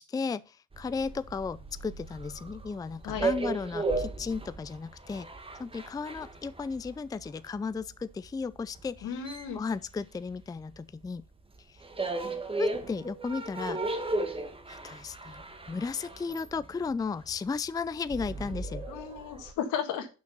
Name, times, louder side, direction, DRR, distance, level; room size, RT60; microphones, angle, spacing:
voice 1, 0.0-5.3 5.6-9.2 9.5-11.2 11.7-11.8 12.6-13.8 14.7-18.8, left 5 dB, 15° left, 0.4 m, -35 dB
sound 1, 0.7-10.8 11.0-19.5, right 3 dB, 20° right, 1.3 m, -36 dB
voice 2, 9.0-9.6 18.9-20.1, left 8 dB, 90° left, 1.7 m, -34 dB
6.4 x 5.9 x 5.6 m
cardioid pair, 90°, 30 cm